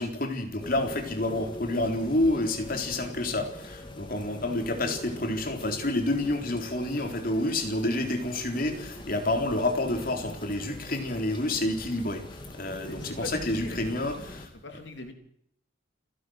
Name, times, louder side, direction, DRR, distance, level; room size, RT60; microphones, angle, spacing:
voice 1, 0.0-14.5, left 1 dB, 50° left, 5 dB, 3.8 m, -29 dB
sound 1, 0.6-14.5, left 1 dB, 25° left, 3.0 m, -42 dB
voice 2, 12.9-14.0 14.6-15.1, left 1 dB, 65° left, 6 dB, 3.5 m, -41 dB
29.5 x 11.5 x 7.9 m, 0.70 s
head